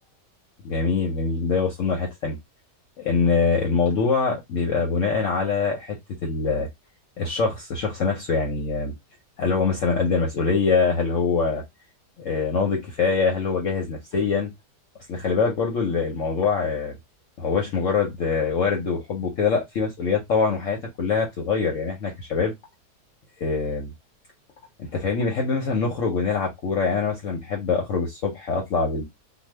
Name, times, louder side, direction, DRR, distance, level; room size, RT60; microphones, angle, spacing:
voice 1, 0.6-2.4 3.0-6.0 6.2-6.7 7.2-8.9 9.4-11.6 12.2-14.5 15.1-16.9 17.4-22.5 23.4-23.9 24.8-29.0, left 5 dB, 65° left, 0.8 m, -24 dB
2.6 x 2.3 x 3.1 m
omnidirectional pair, 1.8 m